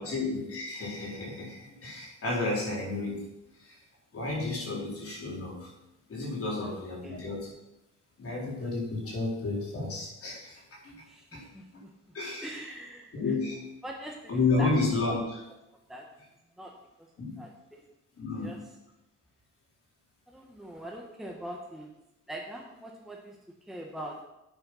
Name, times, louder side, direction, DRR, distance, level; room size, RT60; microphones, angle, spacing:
voice 1, 0.0-3.8 4.1-5.7 6.1-7.5 8.2-11.0 11.3-11.4 11.7-11.8 12.1-12.6 13.1-13.7 14.3-15.4 17.2-17.4 18.1-18.6, left 3 dB, 50° left, -4 dB, 4.1 m, -32 dB
voice 2, 6.7-7.2 10.9-12.1 12.4-13.1 13.8-14.7 15.1-15.2 15.9-16.1 16.5-16.7 17.4-17.8 18.4-18.6 20.3-21.9 22.3-24.2, right 1 dB, ahead, -1 dB, 1.4 m, -43 dB
9.1 x 6.5 x 5.7 m, 0.93 s
cardioid pair, 90°, 30 cm